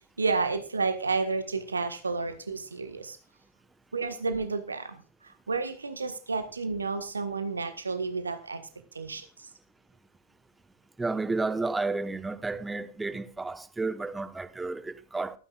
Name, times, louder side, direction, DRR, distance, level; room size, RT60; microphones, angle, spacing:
voice 1, 0.2-3.2 3.9-8.7 8.9-9.5, right 4 dB, 75° right, 1.6 m, -31 dB
voice 2, 11.0-15.4, right 3 dB, 10° right, 1.2 m, -31 dB
29.0 x 9.9 x 2.5 m
figure-of-eight pair, 90°, 0 cm